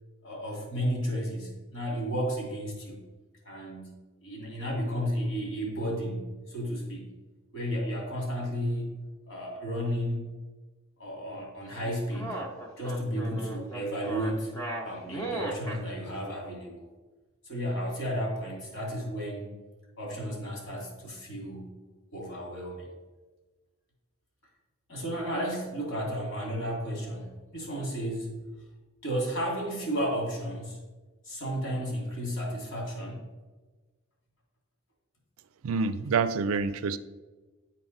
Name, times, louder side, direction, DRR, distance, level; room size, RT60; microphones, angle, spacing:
voice 1, 0.2-3.0 3.4-7.1 7.5-10.4 11.0-12.5 12.8-16.8 17.4-19.5 20.0-21.8 22.1-22.9 24.9-28.6 29.0-30.8 31.2-33.3, equal, 65° left, -2 dB, 2.5 m, -33 dB
sound 1, 11.7-15.8, right 1 dB, 15° left, 0.8 m, -36 dB
voice 2, 35.6-37.0, right 5 dB, 75° right, 13 dB, 0.4 m, -27 dB
9.8 x 4.2 x 3.9 m, 1.3 s
head